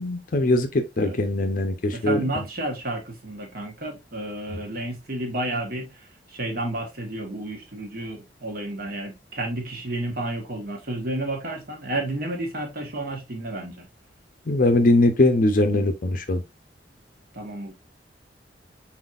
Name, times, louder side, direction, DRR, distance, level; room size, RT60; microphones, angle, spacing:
voice 1, 0.0-2.2 14.5-16.4, left 2 dB, 50° left, 0.6 m, -21 dB
voice 2, 1.9-13.9 17.3-17.7, right 1 dB, 55° right, 1.3 m, -31 dB
4.4 x 4.0 x 2.4 m
head